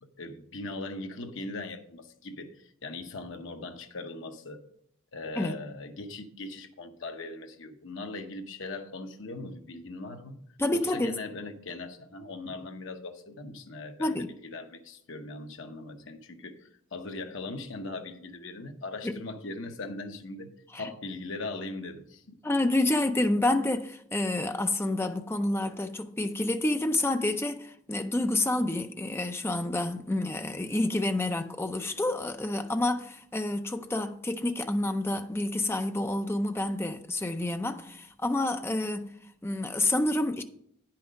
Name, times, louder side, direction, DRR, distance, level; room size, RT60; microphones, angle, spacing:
voice 1, 0.0-4.6 5.1-10.4 10.7-22.4, left 2 dB, 65° left, 1.0 m, -40 dB
voice 2, 10.6-11.1 14.0-14.3 19.0-19.1 20.7-20.8 22.4-39.1 39.4-40.4, left 2 dB, 10° left, 0.5 m, -28 dB
9.5 x 5.8 x 5.2 m
head